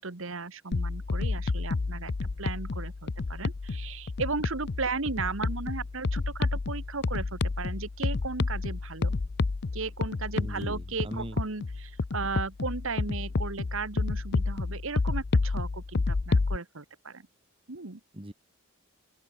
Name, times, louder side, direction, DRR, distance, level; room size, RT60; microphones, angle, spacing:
voice 1, 0.0-9.2 9.7-17.3 17.7-18.0, right 4 dB, 65° right, 1.5 m, -36 dB
sound 1, 0.7-16.6, left 3 dB, 50° left, 0.6 m, -30 dB
voice 2, 10.4-11.4 18.1-18.3, right 1 dB, 25° right, 1.8 m, -40 dB
open air
head